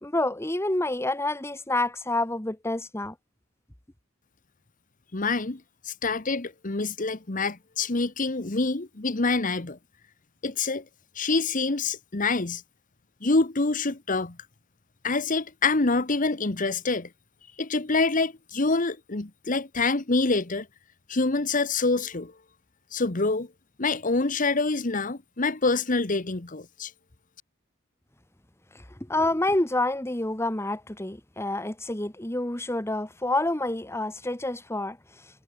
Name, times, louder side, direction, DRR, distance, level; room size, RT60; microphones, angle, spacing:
voice 1, 0.0-3.1 29.1-35.0, left 2 dB, 15° left, 1.6 m, -28 dB
voice 2, 5.1-9.8 10.4-10.8 11.1-12.6 13.2-14.4 15.0-17.1 17.6-20.7 21.1-22.3 22.9-23.5 23.8-26.9, left 3 dB, 40° left, 1.2 m, -26 dB
head